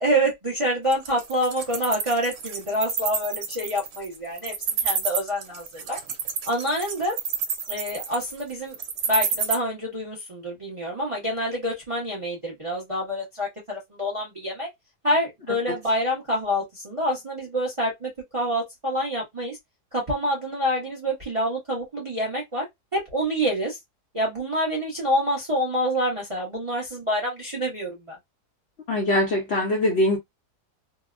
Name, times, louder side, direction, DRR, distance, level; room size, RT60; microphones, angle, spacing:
voice 1, 0.0-6.0 6.4-7.2 7.7-8.8 9.1-14.7 15.0-19.6 19.9-22.7 22.9-23.8 24.1-28.2, equal, 35° right, 0.5 m, -27 dB
Wild animals, 0.9-9.5, right 7 dB, 80° right, 1.2 m, -28 dB
voice 2, 28.9-30.2, left 1 dB, 60° left, 0.7 m, -22 dB
2.9 x 2.0 x 2.4 m
omnidirectional pair, 1.7 m